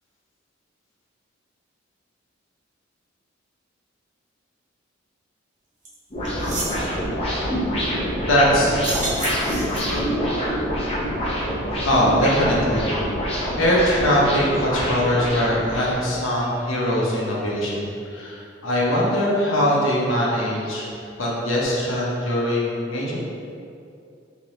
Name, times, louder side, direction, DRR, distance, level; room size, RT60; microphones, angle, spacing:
sound 1, 5.8-5.9 6.2-6.8 8.7-10.1, right 2 dB, 40° right, 0.7 m, -30 dB
sound 2, 6.1-16.2, equal, 30° left, 0.6 m, -26 dB
voice 1, 8.3-8.8 9.9-10.0 11.8-12.9 13.6-20.9 21.2-23.2, equal, 90° left, -5 dB, 0.7 m, -21 dB
3.6 x 3.0 x 3.0 m, 2.4 s
head